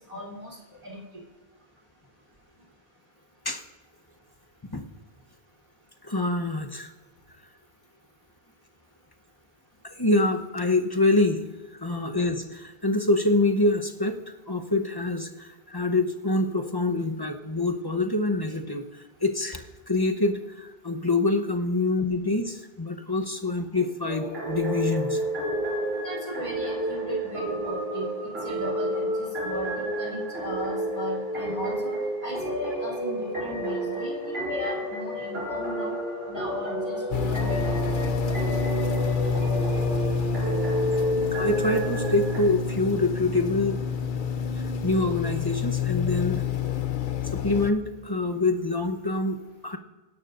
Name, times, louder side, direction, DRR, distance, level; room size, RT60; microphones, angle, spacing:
voice 1, 0.1-0.6 0.8-1.0 26.0-29.7 30.0-31.9 32.2-36.0 36.3-38.5, equal, 35° right, -3 dB, 3.5 m, -37 dB
voice 2, 6.0-6.9 9.8-11.4 11.8-14.2 14.5-25.2 41.3-43.8 44.6-46.4 47.4-49.8, left 2 dB, 25° left, 4 dB, 0.9 m, -26 dB
sound 1, 24.0-42.4, equal, 85° right, 5.8 m, -30 dB
sound 2, 37.1-47.7, left 5 dB, 60° left, 0.8 m, -28 dB
23.5 x 11.5 x 2.6 m, 1.3 s
omnidirectional pair, 1.0 m